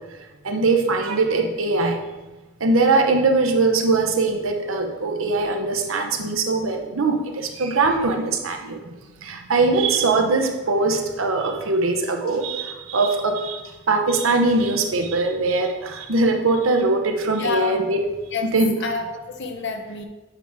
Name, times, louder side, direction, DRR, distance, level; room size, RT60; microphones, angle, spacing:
voice 1, 0.4-2.0 2.6-8.8 9.2-18.0 18.5-18.8, right 3 dB, 85° right, 4 dB, 0.8 m, -21 dB
voice 2, 17.4-17.8 18.3-18.5 18.8-20.0, left 4 dB, 60° left, 5 dB, 0.8 m, -28 dB
8.8 x 4.6 x 3.5 m, 1.1 s
head